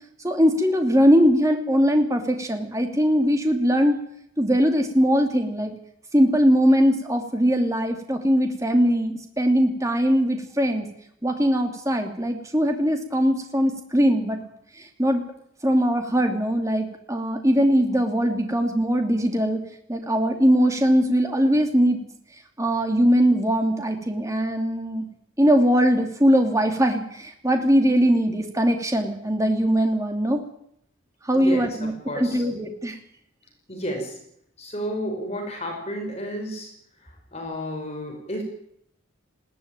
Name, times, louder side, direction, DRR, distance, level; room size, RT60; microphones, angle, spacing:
voice 1, 0.2-4.0 4.4-5.8 6.1-10.9 11.2-14.4 14.8-15.2 15.6-19.6 19.9-22.0 22.6-25.1 25.4-30.4 31.2-33.0, equal, 15° right, 4 dB, 2.9 m, -21 dB
voice 2, 31.3-32.4 33.7-34.2 34.6-36.7 37.0-38.4, equal, 30° left, 2 dB, 5.6 m, -32 dB
20.5 x 16.5 x 9.2 m, 0.73 s
head